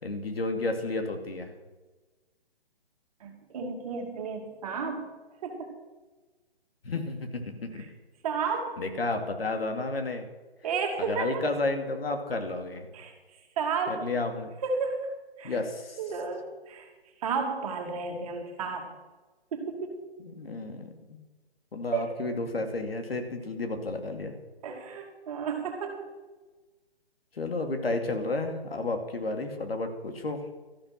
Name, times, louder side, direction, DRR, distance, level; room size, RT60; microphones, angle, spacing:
voice 1, 0.0-1.5 6.8-7.9 8.8-10.3 11.0-12.9 13.9-14.5 15.4-16.0 20.2-21.2 21.7-24.4 27.3-30.5, left 2 dB, 70° left, 5 dB, 2.6 m, -32 dB
voice 2, 3.2-5.1 5.4-5.7 8.2-8.7 10.6-11.4 12.9-13.1 13.6-14.0 14.6-15.1 15.4-15.6 16.0-16.9 17.2-18.9 19.5-20.0 21.9-22.1 24.6-26.1, right 5 dB, 35° right, 3 dB, 2.5 m, -32 dB
13.5 x 11.0 x 5.9 m, 1.2 s
figure-of-eight pair, 140°, 31 cm